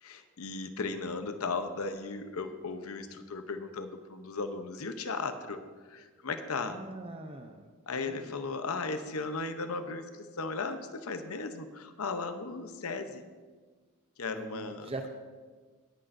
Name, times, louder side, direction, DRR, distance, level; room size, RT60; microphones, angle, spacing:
voice 1, 0.0-5.6 5.9-6.8 7.9-13.2 14.2-14.9, left 4 dB, 85° left, 9 dB, 0.8 m, -36 dB
voice 2, 6.7-7.7 7.9-8.3 14.3-15.1, right 2 dB, 25° right, 4 dB, 0.6 m, -42 dB
17.5 x 10.0 x 2.6 m, 1.4 s
head